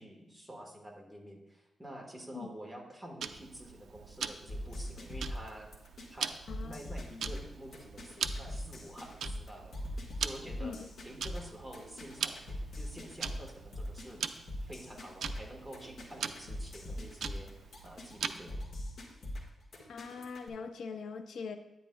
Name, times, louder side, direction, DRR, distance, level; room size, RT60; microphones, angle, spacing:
voice 1, 0.0-5.7 6.1-9.8 10.2-18.6, right 1 dB, 5° right, 0 dB, 1.4 m, -49 dB
Tick-tock, 3.2-18.6, right 7 dB, 85° right, 0.4 m, -42 dB
sound 1, 4.5-20.5, left 1 dB, 70° left, 1.5 m, -42 dB
voice 2, 6.5-6.8 7.1-7.3 10.6-10.9 19.9-21.6, left 5 dB, 85° left, 8 dB, 0.5 m, -42 dB
10.0 x 9.6 x 2.3 m, 1.0 s
wide cardioid pair, 135°, 0 cm